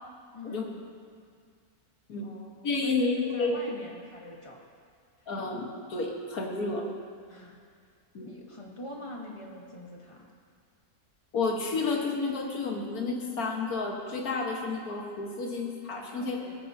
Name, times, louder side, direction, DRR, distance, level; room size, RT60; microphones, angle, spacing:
voice 1, 0.3-0.9 2.2-4.6 7.3-7.6 8.2-10.3 16.0-16.5, left 1 dB, 20° left, -1 dB, 1.3 m, -44 dB
voice 2, 2.6-3.6 5.3-6.8 8.1-8.3 11.3-16.4, left 3 dB, 70° left, 0 dB, 1.9 m, -31 dB
19.0 x 9.4 x 2.8 m, 2.1 s
omnidirectional pair, 1.6 m